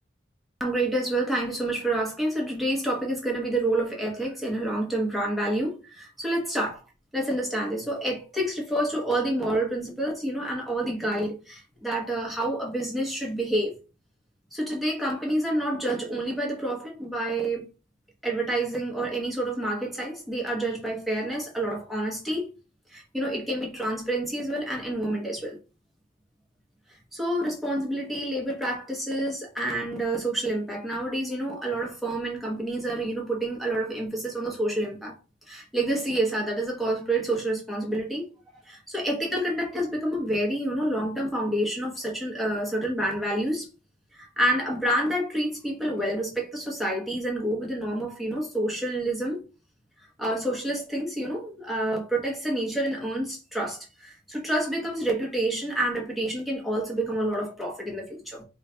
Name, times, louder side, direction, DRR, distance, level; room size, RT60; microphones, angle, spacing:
voice 1, 0.6-6.8 7.1-13.7 14.5-17.7 18.2-22.5 22.9-25.6 27.1-35.1 35.5-43.7 44.1-49.4 50.2-58.4, right 1 dB, ahead, 1.0 m, -28 dB
3.1 x 2.4 x 4.3 m
head